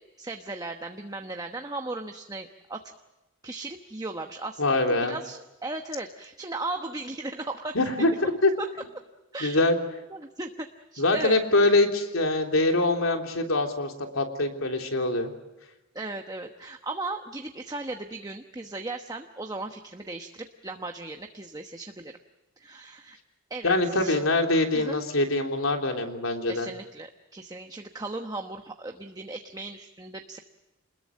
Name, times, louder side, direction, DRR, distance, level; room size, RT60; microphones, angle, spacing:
voice 1, 0.0-2.8 3.4-7.8 8.6-8.7 9.3-9.7 10.1-11.4 15.9-22.1 22.6-23.2 23.5-24.2 24.7-25.0 26.5-30.4, right 2 dB, 20° right, 5 dB, 1.1 m, -37 dB
voice 2, 4.6-5.2 7.7-8.1 8.4-8.5 9.4-9.8 11.0-15.3 23.6-26.7, left 2 dB, 85° left, 3 dB, 3.5 m, -24 dB
27.5 x 21.0 x 7.6 m, 1.0 s
head